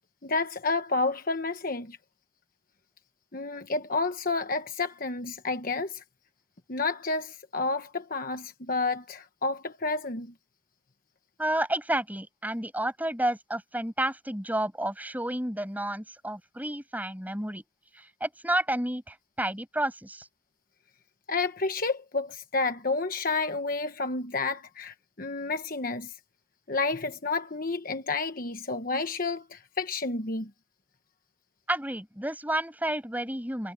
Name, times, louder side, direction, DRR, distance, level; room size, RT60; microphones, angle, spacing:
voice 1, 0.2-2.0 3.3-6.0 6.7-10.3 21.3-26.1 26.7-30.5, left 3 dB, 45° left, 1.2 m, -30 dB
voice 2, 11.4-17.6 17.9-20.3 31.7-33.7, right 1 dB, 10° right, 7.7 m, -31 dB
head